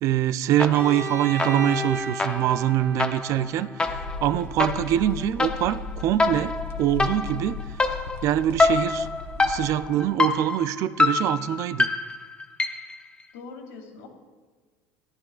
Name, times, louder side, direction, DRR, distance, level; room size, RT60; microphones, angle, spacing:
voice 1, 0.0-3.9 4.2-7.6 7.9-9.1 9.4-11.9, right 11 dB, 50° right, 14 dB, 0.4 m, -24 dB
sound 1, 0.6-1.1 1.4-13.0, left 3 dB, 15° left, 0.6 m, -26 dB
Bowed string instrument, 0.7-4.6, right 2 dB, 30° right, 2.1 m, -34 dB
sound 2, 3.8-9.7, left 4 dB, 40° left, 1.3 m, -36 dB
voice 2, 13.3-14.1, left 4 dB, 80° left, 3 dB, 2.3 m, -43 dB
17.5 x 11.5 x 2.4 m, 1.4 s
cardioid pair, 135°, 7 cm